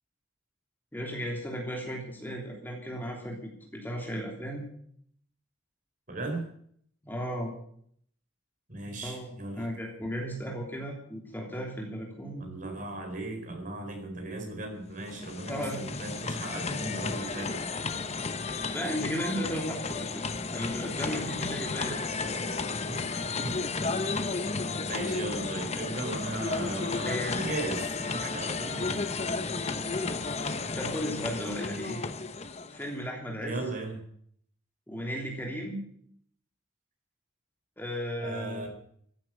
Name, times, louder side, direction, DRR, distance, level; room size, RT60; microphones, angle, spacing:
voice 1, 0.9-4.6 7.0-7.5 9.0-12.5 15.5-15.8 18.4-22.0 27.0-27.4 30.7-32.0 32.7-33.6 34.9-35.8 37.8-38.7, equal, 10° left, -1 dB, 3.3 m, -35 dB
voice 2, 6.1-6.4 8.7-9.7 12.4-17.5 22.9-23.1 23.4-23.5 24.9-29.1 33.4-34.0 38.2-38.7, right 2 dB, 40° right, 3 dB, 4.6 m, -37 dB
sound 1, 14.9-33.0, left 4 dB, 30° left, 0.9 m, -33 dB
15.5 x 9.7 x 9.0 m, 0.64 s
head